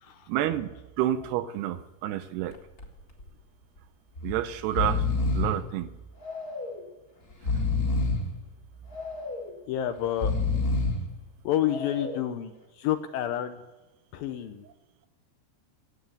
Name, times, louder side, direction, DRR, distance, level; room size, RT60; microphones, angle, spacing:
voice 1, 0.3-2.6 4.2-5.1 5.3-5.9 7.5-7.6, right 12 dB, 80° right, 11 dB, 2.6 m, -29 dB
Breathing, 2.5-2.9 3.2-3.3 4.1-4.3 4.6-5.6 6.2-6.8 7.3-8.3 8.9-9.5 10.1-11.1 11.6-12.3, left 3 dB, 30° left, 1.9 m, -28 dB
voice 2, 9.7-10.3 11.4-13.6 14.1-14.7, left 11 dB, 80° left, 9 dB, 2.2 m, -29 dB
15.0 x 8.8 x 9.2 m, 1.1 s
omnidirectional pair, 4.8 m